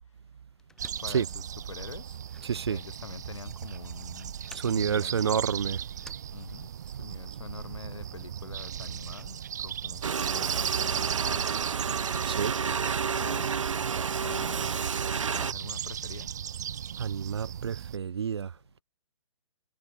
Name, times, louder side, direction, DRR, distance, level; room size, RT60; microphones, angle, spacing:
sound 1, 0.6-6.9, left 3 dB, 5° left, 3.1 m, -56 dB
sound 2, 0.8-18.0, right 9 dB, 35° right, 2.2 m, -37 dB
voice 1, 1.0-1.4 1.7-2.2 2.6-4.3 4.6-5.5 6.3-6.7 7.0-10.0 10.3-11.6 13.1-13.6 14.2-14.9 15.3-16.3, left 6 dB, 70° left, 5.0 m, -44 dB
voice 2, 2.4-2.8 4.5-5.8 12.2-12.5 17.0-18.5, right 7 dB, 55° right, 0.6 m, -29 dB
sound 3, 10.0-15.5, right 6 dB, 80° right, 1.1 m, -30 dB
hypercardioid pair, 180°, 16 cm